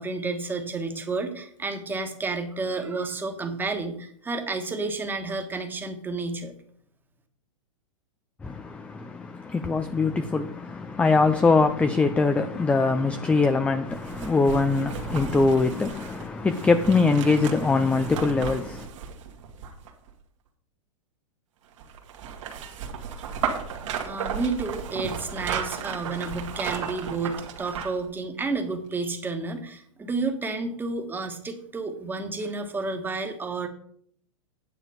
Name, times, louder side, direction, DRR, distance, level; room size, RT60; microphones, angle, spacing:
voice 1, 0.0-6.5 24.0-33.7, right 3 dB, 10° right, 1.5 m, -31 dB
voice 2, 8.4-18.9, left 3 dB, 5° left, 0.4 m, -23 dB
sound 1, 13.9-20.1 21.8-28.1 28.5-28.6, right 7 dB, 65° right, 1.9 m, -35 dB
9.7 x 7.2 x 5.0 m
hypercardioid pair, 125°, 17 cm